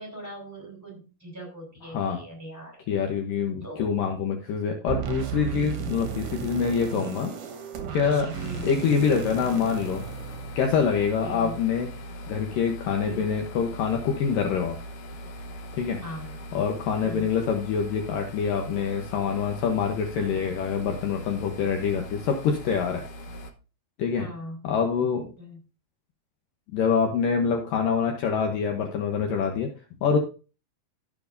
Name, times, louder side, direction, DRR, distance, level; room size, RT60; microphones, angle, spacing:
voice 1, 0.0-2.8 3.6-3.8 8.3-8.8 11.2-11.6 13.0-13.3 16.0-16.4 17.0-17.3 24.2-24.7 25.4-25.6, right 1 dB, 5° right, -2 dB, 4.1 m, -40 dB
voice 2, 1.9-2.2 2.9-7.3 7.9-8.3 8.6-10.0 10.6-11.9 12.3-14.8 15.7-16.0 16.5-23.0 24.0-24.3 24.6-25.3 26.7-29.7 30.0-30.2, left 6 dB, 70° left, 3 dB, 2.5 m, -25 dB
sound 1, 4.9-11.0, right 9 dB, 65° right, 2.5 m, -34 dB
sound 2, 8.3-23.5, equal, 85° left, 1.3 m, -40 dB
16.5 x 7.3 x 2.6 m, 0.34 s
omnidirectional pair, 4.5 m